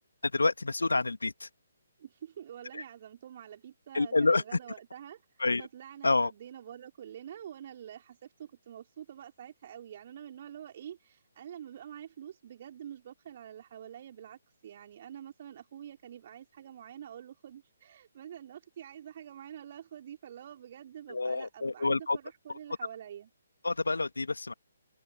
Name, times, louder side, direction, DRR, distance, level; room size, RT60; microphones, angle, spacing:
voice 1, 0.3-1.5 3.9-4.4 5.4-5.6 6.0-6.3 21.1-22.2 23.6-24.5, left 3 dB, 70° left, 2.3 m, -28 dB
voice 2, 2.0-23.3, right 10 dB, 40° right, 5.4 m, -47 dB
open air
figure-of-eight pair, 135°, 0 cm